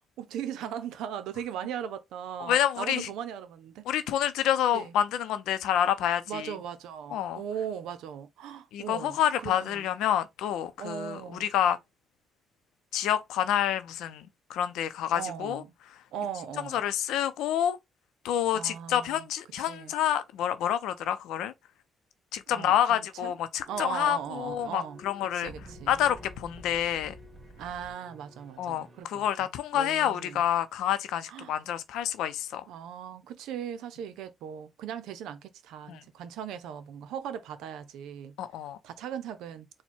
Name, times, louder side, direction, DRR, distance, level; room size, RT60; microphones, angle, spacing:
voice 1, 0.2-3.9 4.7-4.9 6.3-9.9 10.8-11.5 15.1-15.7 16.1-16.8 18.5-19.3 19.6-19.9 22.5-23.3 23.7-25.0 25.3-25.9 27.6-29.5 29.7-30.4 31.3-31.5 32.7-38.4 38.8-39.7, right 9 dB, 90° right, 0.6 m, -38 dB
voice 2, 2.4-3.1 3.9-6.5 7.1-7.4 8.7-11.8 12.9-15.6 16.7-17.8 18.2-21.5 22.3-25.5 25.9-27.1 28.6-32.7 35.9-36.0 38.4-38.8, left 10 dB, 85° left, 0.6 m, -28 dB
sound 1, 23.6-29.0, equal, 35° right, 1.8 m, -50 dB
4.3 x 2.2 x 4.4 m
cardioid pair, 90°, 0 cm